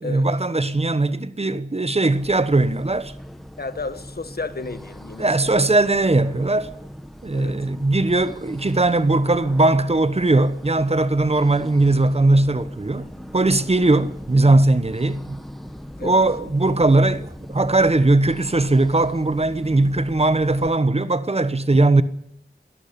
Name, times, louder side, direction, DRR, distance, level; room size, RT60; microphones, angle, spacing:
voice 1, 0.0-3.1 5.2-6.7 7.2-13.1 13.3-15.4 16.0-22.0, right 2 dB, 35° right, 1.1 m, -19 dB
sound 1, 2.1-20.7, equal, ahead, 1.7 m, -40 dB
voice 2, 3.6-5.6 7.3-7.7 16.0-16.2, left 3 dB, 65° left, 1.5 m, -33 dB
21.0 x 12.5 x 10.0 m
wide cardioid pair, 70°, 17 cm